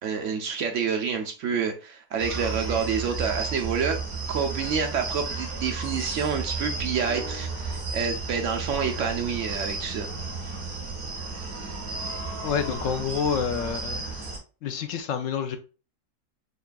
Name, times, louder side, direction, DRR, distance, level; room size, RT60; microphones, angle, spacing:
voice 1, 0.0-4.0 4.3-10.1, right 6 dB, 65° right, 4 dB, 0.8 m, -28 dB
sound 1, 2.2-14.4, right 4 dB, 85° right, 2.1 m, -33 dB
voice 2, 12.4-14.0 14.6-15.6, left 7 dB, 70° left, 7 dB, 0.7 m, -28 dB
6.6 x 2.4 x 2.2 m, 0.34 s
omnidirectional pair, 1.7 m